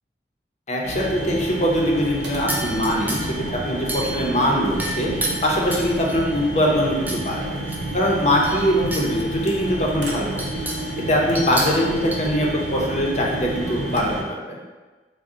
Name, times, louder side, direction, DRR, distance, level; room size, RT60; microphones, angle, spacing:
voice 1, 0.7-3.2 3.7-5.1 5.4-7.4 7.9-10.4 11.1-14.6, equal, 40° left, -2 dB, 0.6 m, -22 dB
sound 1, 0.8-14.2, right 1 dB, 80° right, 0.6 m, -30 dB
sound 2, 2.5-3.4 3.9-4.4 4.8-6.3 7.1-7.2 7.6-9.1 9.5-9.6 10.1-10.9 11.4-12.2, right 1 dB, 10° right, 0.3 m, -30 dB
3.6 x 2.0 x 3.7 m, 1.3 s
head